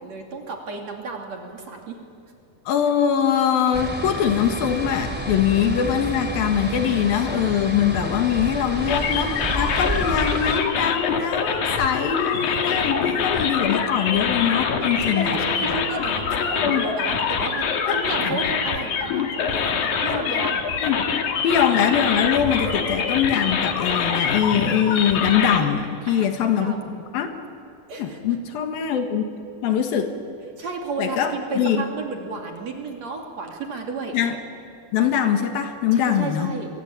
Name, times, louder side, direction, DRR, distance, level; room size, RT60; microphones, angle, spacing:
voice 1, 0.0-2.0 15.0-20.6 26.1-26.8 27.9-28.2 30.6-34.1 35.9-36.7, right 3 dB, 45° right, 2 dB, 3.7 m, -33 dB
voice 2, 2.7-15.4 16.4-16.9 17.9-18.4 20.1-20.3 20.8-21.0 21.4-26.7 27.1-27.3 28.0-29.2 29.6-30.1 31.0-31.8 34.1-34.4 34.9-36.5, left 8 dB, 75° left, 6 dB, 3.3 m, -22 dB
sound 1, 3.7-10.6, right 1 dB, 5° right, 1.8 m, -30 dB
sound 2, 8.9-25.6, left 6 dB, 55° left, 2.9 m, -25 dB
27.5 x 23.5 x 8.8 m, 2.6 s
omnidirectional pair, 4.4 m